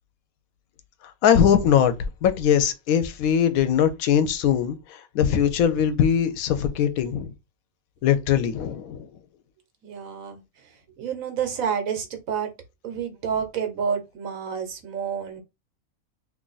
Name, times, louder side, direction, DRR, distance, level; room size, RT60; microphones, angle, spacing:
voice 1, 1.2-1.9 2.2-4.8 5.1-7.3 8.0-9.1, left 8 dB, 85° left, 1.0 m, -21 dB
voice 2, 9.8-10.4 11.0-12.5 12.8-15.4, right 7 dB, 75° right, 1.2 m, -29 dB
2.8 x 2.5 x 3.8 m
omnidirectional pair, 1.5 m